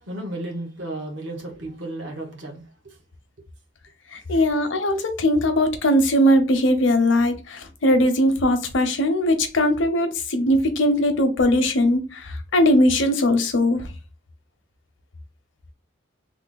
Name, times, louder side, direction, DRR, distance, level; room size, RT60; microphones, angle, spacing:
voice 1, 0.0-3.0 4.3-4.4, right 1 dB, 65° right, 1.1 m, -34 dB
voice 2, 4.1-13.8, left 1 dB, 70° left, 0.6 m, -20 dB
3.2 x 2.1 x 3.9 m
head